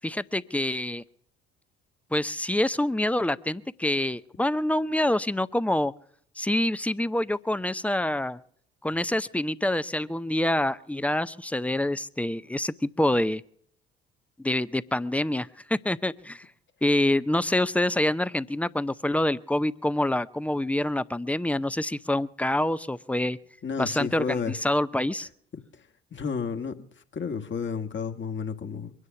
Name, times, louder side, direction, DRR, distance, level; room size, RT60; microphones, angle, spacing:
voice 1, 0.0-1.0 2.1-5.9 6.4-8.4 8.8-13.4 14.4-16.4 16.8-23.4 23.8-25.3, left 1 dB, 5° left, 0.6 m, -26 dB
voice 2, 23.6-24.6 25.5-28.9, left 6 dB, 35° left, 1.6 m, -32 dB
23.0 x 9.9 x 5.9 m
figure-of-eight pair, 55°, 32 cm